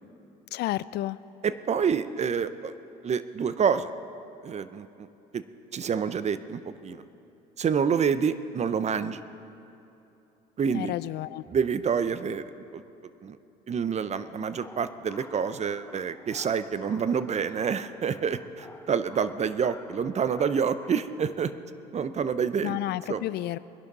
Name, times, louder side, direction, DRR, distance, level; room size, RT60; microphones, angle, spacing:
voice 1, 0.5-1.2 10.7-11.4 22.6-23.6, left 15 dB, 55° left, 17 dB, 0.4 m, -31 dB
voice 2, 1.4-2.7 3.0-3.9 4.4-5.1 5.3-5.4 5.7-7.0 7.6-9.2 10.6-10.9 11.5-12.8 13.2-13.4 13.7-21.5 21.9-22.8 23.1-23.2, right 6 dB, 35° right, 13 dB, 0.7 m, -28 dB
sound 1, 14.1-21.1, left 3 dB, 15° left, 1.0 m, -50 dB
21.0 x 11.5 x 4.1 m, 2.9 s
hypercardioid pair, 70°, 20 cm